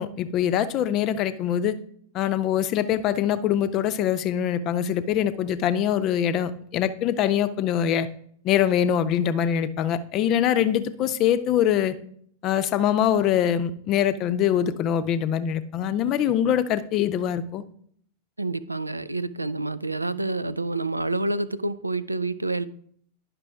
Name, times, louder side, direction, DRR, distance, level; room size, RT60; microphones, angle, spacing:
voice 1, 0.0-1.7 2.1-8.1 8.4-11.9 12.4-17.6, left 10 dB, 35° left, 13 dB, 0.6 m, -23 dB
voice 2, 18.4-22.6, right 2 dB, 85° right, 15 dB, 0.3 m, -28 dB
10.5 x 5.9 x 3.4 m, 0.64 s
figure-of-eight pair, 90°, 0 cm